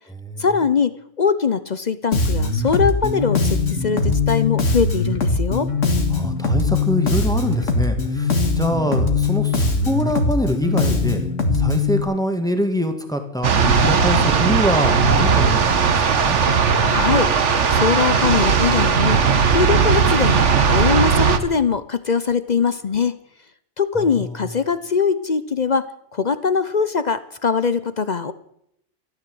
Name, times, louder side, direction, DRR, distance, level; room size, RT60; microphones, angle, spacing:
voice 1, 0.4-5.7 16.8-17.3 17.7-23.2 23.8-28.3, left 5 dB, 45° left, 13 dB, 0.7 m, -22 dB
Bass guitar, 2.1-12.0, left 3 dB, 85° left, 2.2 m, -21 dB
voice 2, 6.1-11.2 11.5-16.4 24.0-24.5, equal, 5° left, 5 dB, 1.8 m, -25 dB
sound 1, 13.4-21.4, right 5 dB, 70° right, 1.5 m, -17 dB
13.5 x 13.0 x 7.8 m, 0.75 s
omnidirectional pair, 1.3 m